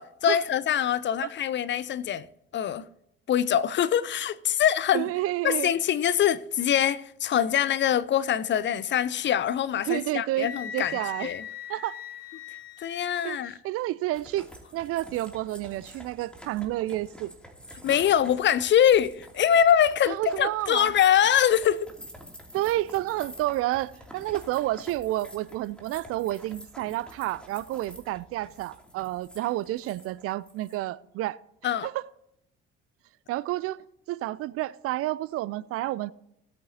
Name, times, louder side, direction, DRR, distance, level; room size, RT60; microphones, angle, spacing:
voice 1, 0.0-2.3 2.5-2.9 3.3-5.1 5.4-11.4 12.8-13.5 17.8-21.9 31.6-31.9, left 9 dB, 40° left, 0.6 m, -24 dB
voice 2, 4.9-5.7 9.8-11.3 11.7-12.0 13.2-13.4 13.6-14.5 14.7-17.3 20.1-20.9 22.5-31.4 31.8-32.0 33.3-33.8 34.1-36.1, right 16 dB, 50° right, 0.5 m, -30 dB
Wind instrument woodwind instrument, 10.4-13.2, left 8 dB, 80° left, 0.7 m, -40 dB
sound 1, 14.1-30.7, equal, 5° left, 2.7 m, -48 dB
17.5 x 8.4 x 2.8 m
figure-of-eight pair, 55°, 29 cm